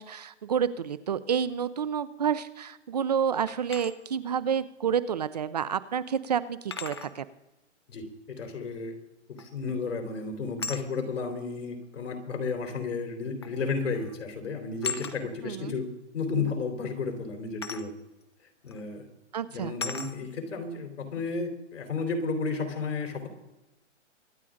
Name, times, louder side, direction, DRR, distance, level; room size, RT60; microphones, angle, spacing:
voice 1, 0.0-7.3 15.4-15.7 19.3-19.7, right 7 dB, 35° right, 16 dB, 0.5 m, -29 dB
sound 1, 3.5-3.9 5.5-5.6 6.7-7.1 9.4-9.7 10.6-10.9 12.1-12.2 13.4-13.6 13.9-14.2 14.8-15.2 17.6-17.9 18.7-18.8 19.8-20.1, left 5 dB, 25° left, 0.4 m, -36 dB
voice 2, 7.9-8.9 9.3-15.9 16.1-17.9 18.6-19.1 19.5-23.3, left 4 dB, 80° left, 4 dB, 3.7 m, -32 dB
24.5 x 10.0 x 3.7 m, 0.94 s
hypercardioid pair, 170°, 36 cm